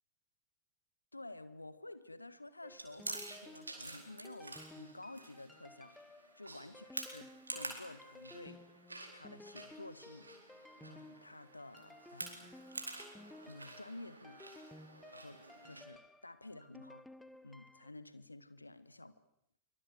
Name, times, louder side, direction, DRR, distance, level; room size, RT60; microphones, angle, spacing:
voice 1, 1.1-5.9 6.4-8.6 9.1-10.3 10.8-12.5 13.4-14.4 15.1-17.1 17.4-19.1, left 2 dB, 85° left, 14 dB, 1.7 m, -51 dB
sound 1, 2.6-17.9, left 1 dB, 5° left, 1.3 m, -56 dB
Chewing mastication, 2.7-15.8, right 2 dB, 80° right, 4.4 m, -49 dB
25.0 x 24.0 x 8.1 m, 0.73 s
figure-of-eight pair, 90°, 0 cm